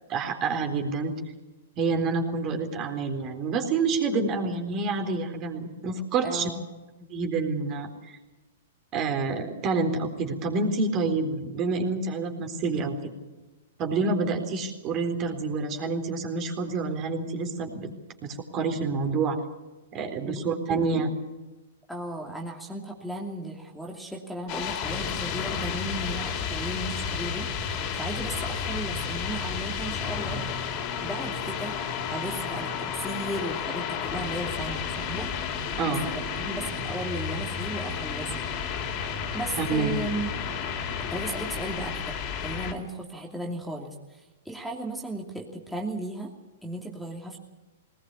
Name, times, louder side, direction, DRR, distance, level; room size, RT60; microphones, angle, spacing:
voice 1, 0.1-1.1 1.8-6.5 7.0-8.2 8.9-13.1 13.8-17.9 18.2-19.4 19.9-21.1 35.8-36.0 39.6-39.9, right 4 dB, 35° right, 4 dB, 4.0 m, -28 dB
voice 2, 6.2-6.6 20.2-20.8 21.9-30.4 31.0-31.8 32.1-35.3 35.6-35.7 36.0-38.5 39.3-40.3 41.1-46.3 46.6-47.4, right 1 dB, ahead, -2 dB, 2.8 m, -36 dB
sound 1, 24.5-42.7, left 6 dB, 40° left, 3.6 m, -32 dB
20.0 x 19.5 x 8.6 m, 1.1 s
hypercardioid pair, 115°, 0 cm